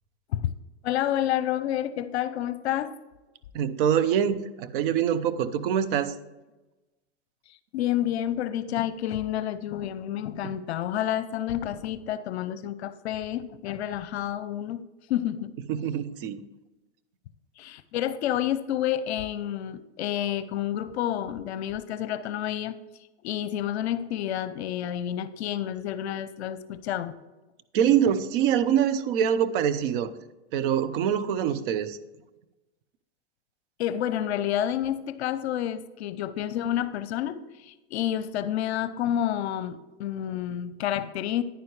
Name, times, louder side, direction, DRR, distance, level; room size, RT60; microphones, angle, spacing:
voice 1, 0.8-2.9 7.7-15.5 17.6-22.7 23.2-27.1 33.8-41.4, left 11 dB, 65° left, 13 dB, 0.7 m, -29 dB
voice 2, 3.5-6.2 10.4-10.5 15.7-16.4 27.7-30.1 30.5-32.0, right 9 dB, 50° right, 13 dB, 0.8 m, -24 dB
10.0 x 9.4 x 3.2 m, 1.1 s
hypercardioid pair, 130°, 34 cm